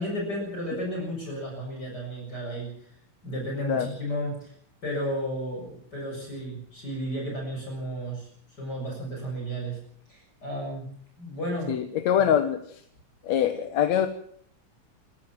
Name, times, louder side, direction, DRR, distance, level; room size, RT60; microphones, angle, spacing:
voice 1, 0.0-2.7 3.2-4.5 4.8-8.3 8.6-9.8 10.1-10.8 11.2-11.7 12.2-12.3, equal, 35° left, -1 dB, 7.5 m, -33 dB
voice 2, 11.7-12.8 13.2-14.1, left 9 dB, 70° left, 8 dB, 2.4 m, -24 dB
27.5 x 15.0 x 7.4 m, 0.64 s
omnidirectional pair, 3.3 m